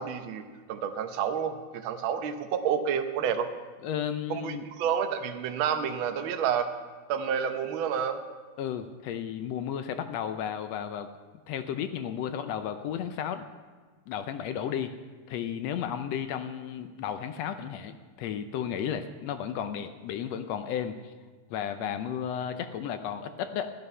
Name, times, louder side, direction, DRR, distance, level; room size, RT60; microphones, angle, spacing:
voice 1, 0.0-3.5 4.3-6.7 7.1-8.2, right 7 dB, 75° right, 7 dB, 1.1 m, -29 dB
voice 2, 3.8-4.7 8.6-11.1 11.5-13.4 14.1-14.9 15.3-21.1 21.5-23.7, left 9 dB, 75° left, 9 dB, 1.6 m, -33 dB
14.5 x 11.5 x 5.5 m, 1.4 s
omnidirectional pair, 3.4 m